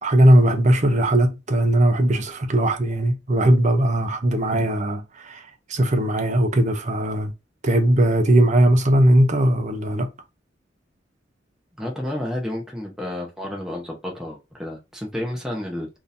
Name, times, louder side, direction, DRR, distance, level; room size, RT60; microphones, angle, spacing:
voice 1, 0.0-7.3 7.6-10.1, right 1 dB, 40° right, 0.7 m, -19 dB
voice 2, 11.8-15.9, left 1 dB, 5° right, 0.7 m, -30 dB
3.6 x 2.7 x 2.6 m
head